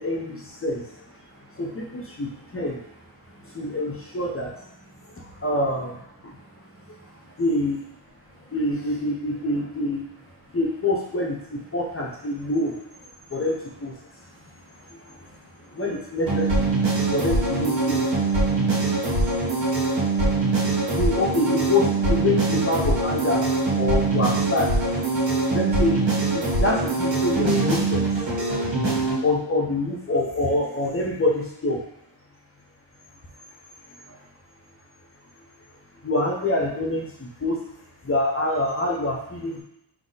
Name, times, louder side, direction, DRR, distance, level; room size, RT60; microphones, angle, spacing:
voice 1, 0.0-1.0 1.5-2.8 3.4-4.5 5.2-6.3 7.4-7.8 8.5-10.0 10.5-12.7 13.3-14.0 14.9-15.2 15.7-16.9 17.1-18.1 19.3-19.5 20.2-20.3 20.9-24.8 25.5-26.1 26.3-28.1 29.2-31.8 34.1-34.2 36.0-37.6 38.0-39.6, left 2 dB, 30° left, -2 dB, 0.8 m, -26 dB
voice 2, 1.2-1.6 1.9-2.6 3.2-3.8 4.9-5.4 6.2-7.4 8.1-8.6 10.4-10.6 12.4-12.5 13.1-13.4 14.0-15.8 18.4-21.0, right 1 dB, 50° right, -4 dB, 1.4 m, -54 dB
sound 1, 16.3-29.2, right 3 dB, 75° right, 1.6 m, -23 dB
3.8 x 2.9 x 4.0 m, 0.76 s
wide cardioid pair, 105°, 45 cm